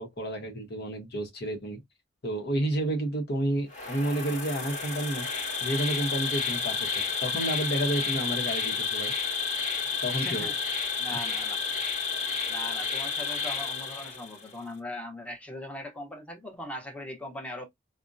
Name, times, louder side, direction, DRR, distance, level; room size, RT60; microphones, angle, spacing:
voice 1, 0.0-1.8 2.2-5.3 5.6-9.1 10.0-10.5, right 1 dB, 60° left, 0.9 m, -30 dB
Insect, 3.7-14.5, left 5 dB, 40° left, 1.2 m, -31 dB
voice 2, 10.2-10.6 11.0-11.6 12.5-17.6, left 1 dB, 5° left, 0.8 m, -40 dB
5.0 x 2.1 x 2.5 m
head